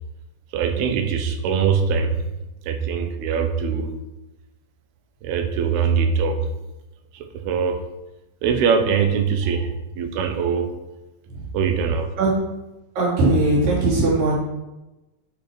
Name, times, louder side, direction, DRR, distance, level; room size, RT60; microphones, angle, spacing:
voice 1, 0.5-2.3 2.6-3.9 5.2-6.5 7.1-7.9 8.4-10.8 11.5-12.1, right 6 dB, 80° right, 6 dB, 2.7 m, -22 dB
voice 2, 13.0-14.4, right 2 dB, 60° right, -4 dB, 4.3 m, -19 dB
12.0 x 5.2 x 4.8 m, 1.0 s
omnidirectional pair, 4.7 m